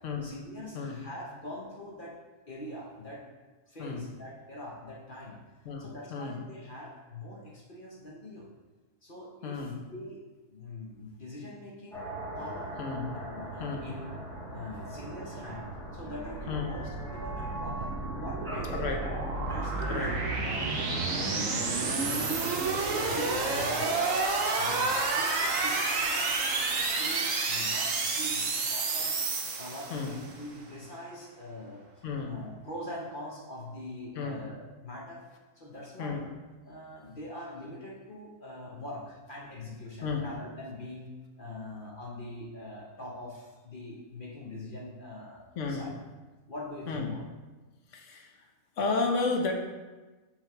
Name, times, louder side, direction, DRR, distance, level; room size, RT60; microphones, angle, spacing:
voice 1, 0.2-2.2 2.5-3.2 3.7-5.4 5.8-8.5 9.0-10.2 10.5-12.1 12.3-12.7 13.1-14.2 14.5-18.9 19.4-22.4 22.7-24.2 24.5-26.4 26.8-29.1 29.6-35.2 35.6-36.2 36.6-41.1 41.4-45.9 46.5-47.2, left 1 dB, 45° left, -3 dB, 1.0 m, -43 dB
voice 2, 5.6-6.4 9.4-9.7 12.8-13.1 13.6-13.9 16.5-16.7 18.7-19.0 19.9-20.1 29.9-30.1 32.0-32.3 34.2-34.4 36.0-36.2 40.0-40.2 45.6-45.9 46.9-47.1 47.9-48.3 48.8-49.5, left 4 dB, 70° left, 2 dB, 1.2 m, -32 dB
sound 1, 11.9-23.6, right 2 dB, ahead, 1.7 m, -41 dB
sound 2, 15.8-30.3, right 3 dB, 75° right, 1.2 m, -30 dB
5.9 x 3.5 x 5.7 m, 1.2 s
omnidirectional pair, 1.4 m